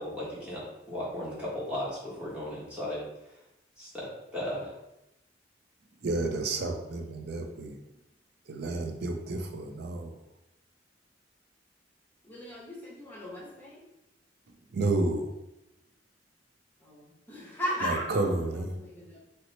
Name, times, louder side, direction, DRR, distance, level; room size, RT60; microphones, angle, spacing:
voice 1, 0.0-3.0 3.8-4.7, left 1 dB, 5° right, -8 dB, 1.2 m, -36 dB
voice 2, 6.0-7.8 8.5-10.1 14.7-15.3 17.8-18.7, right 2 dB, 65° right, 5 dB, 0.4 m, -30 dB
voice 3, 12.2-13.8 16.8-19.2, equal, 10° left, -5 dB, 0.9 m, -37 dB
2.9 x 2.1 x 3.9 m, 0.90 s
head